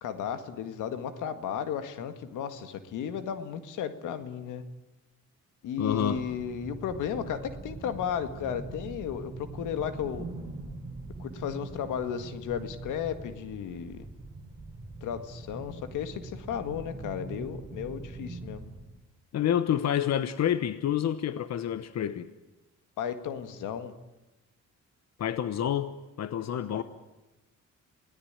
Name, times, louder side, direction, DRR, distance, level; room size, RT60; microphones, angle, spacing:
voice 1, 0.0-4.6 5.6-10.3 11.2-14.0 15.0-18.7 23.0-23.9 26.7-26.8, left 8 dB, 85° left, 10 dB, 1.9 m, -34 dB
voice 2, 5.8-6.2 19.3-22.3 25.2-26.8, left 10 dB, 60° left, 12 dB, 1.1 m, -28 dB
sound 1, 5.9-18.8, right 2 dB, 15° right, 5.5 m, -42 dB
27.5 x 18.0 x 9.0 m, 1.0 s
cardioid pair, 90°, 30 cm